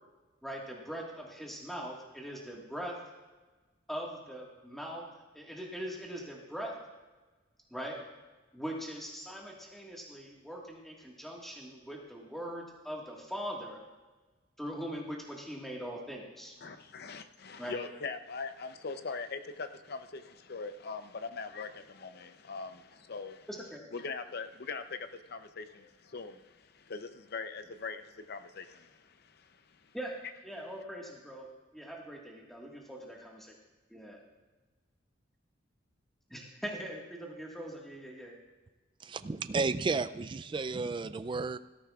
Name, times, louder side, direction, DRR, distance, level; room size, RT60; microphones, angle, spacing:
voice 1, 0.4-3.0 3.9-5.0 5.3-6.7 7.7-8.0 8.5-13.8 14.6-16.5 17.6-17.8 23.5-23.8 29.9-30.2 30.4-31.5 31.7-33.5 33.9-34.2 36.3-38.4, equal, ahead, 1.6 m, -41 dB
voice 2, 16.6-23.5 23.9-30.0, left 4 dB, 55° left, 0.6 m, -42 dB
voice 3, 39.0-41.6, right 4 dB, 25° right, 0.3 m, -32 dB
17.5 x 14.0 x 2.4 m
head